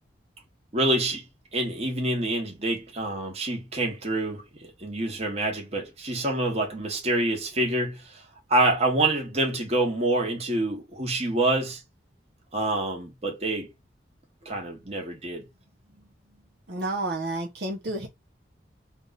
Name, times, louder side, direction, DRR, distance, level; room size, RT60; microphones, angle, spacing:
voice 1, 0.7-1.2 1.5-8.2 8.5-11.8 12.5-13.7 14.4-15.4, right 2 dB, 35° right, 1.3 m, -26 dB
voice 2, 16.7-18.1, right 2 dB, 65° right, 0.9 m, -30 dB
3.5 x 2.5 x 4.0 m
head